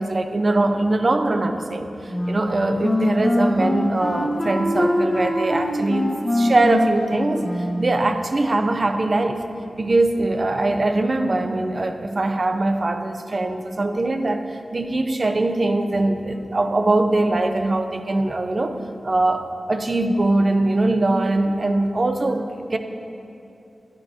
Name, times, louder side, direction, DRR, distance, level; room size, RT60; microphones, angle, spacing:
voice 1, 0.0-9.4 9.8-18.8 19.0-22.8, right 2 dB, 45° right, 6 dB, 0.7 m, -22 dB
Wind instrument woodwind instrument, 2.1-8.0, left 1 dB, 35° left, 1.5 m, -23 dB
13.5 x 10.0 x 2.9 m, 2.8 s
cardioid pair, 60°, 0 cm